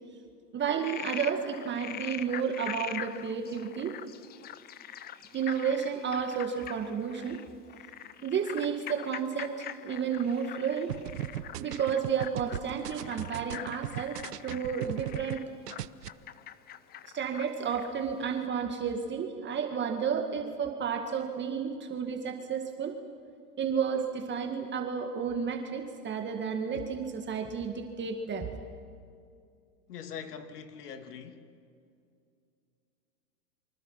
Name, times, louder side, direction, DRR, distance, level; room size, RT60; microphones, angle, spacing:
voice 1, 0.5-3.9 5.3-7.4 8.2-10.9 11.6-15.4 17.1-23.0 23.6-28.6, right 7 dB, 25° right, 2.0 m, -32 dB
Frog, 0.6-18.0, left 11 dB, 20° left, 0.7 m, -43 dB
sound 1, 10.9-15.4 15.7-16.1, right 12 dB, 80° right, 1.0 m, -38 dB
voice 2, 29.9-31.5, left 7 dB, 75° left, 2.7 m, -42 dB
28.0 x 25.0 x 6.0 m
hypercardioid pair, 125°, 46 cm